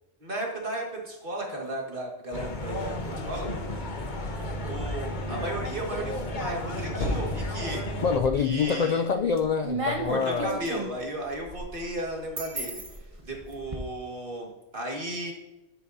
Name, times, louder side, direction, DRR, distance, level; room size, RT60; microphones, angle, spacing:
voice 1, 0.2-2.9 3.2-3.5 4.6-7.8 8.4-9.0 10.1-12.8 13.2-15.3, right 1 dB, 45° right, 0 dB, 2.0 m, -34 dB
sound 1, 2.3-8.2, left 1 dB, 40° left, 1.1 m, -32 dB
voice 2, 8.0-10.6, left 6 dB, 60° left, 8 dB, 0.4 m, -26 dB
sound 2, 8.2-8.7 9.1-13.8, right 2 dB, 30° right, 1.1 m, -35 dB
10.0 x 9.0 x 2.7 m, 0.99 s
omnidirectional pair, 1.2 m